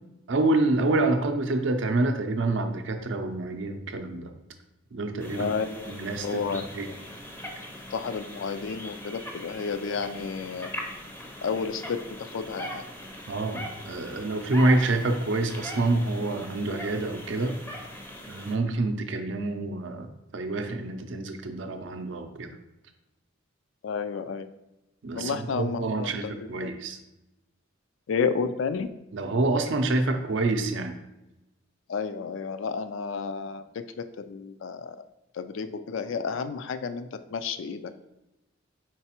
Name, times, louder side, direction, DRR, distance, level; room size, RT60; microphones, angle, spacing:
voice 1, 0.3-4.3 4.9-5.5 5.9-6.9 13.3-17.5 18.3-22.5 25.0-27.0 29.1-30.9, right 2 dB, 60° right, 6 dB, 0.5 m, -27 dB
sound 1, 5.2-18.6, equal, 10° left, 0.5 m, -41 dB
voice 2, 5.3-7.0 7.9-10.7 11.4-12.8 23.8-24.5 25.1-26.7 28.1-28.9 31.9-35.1 35.3-37.9, left 5 dB, 65° left, 10 dB, 0.3 m, -31 dB
4.5 x 3.9 x 2.9 m, 0.95 s
head